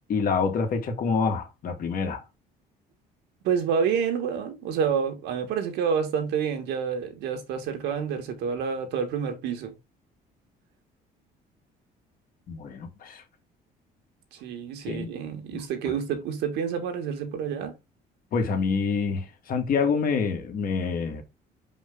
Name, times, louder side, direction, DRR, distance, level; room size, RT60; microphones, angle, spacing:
voice 1, 0.1-2.2 12.5-13.2 14.9-15.1 15.5-15.9 18.3-21.2, left 5 dB, 55° left, 2.2 m, -27 dB
voice 2, 3.4-9.7 14.3-17.8, right 7 dB, 90° right, 2.0 m, -28 dB
5.7 x 5.1 x 3.8 m
cardioid pair, 110°, 17 cm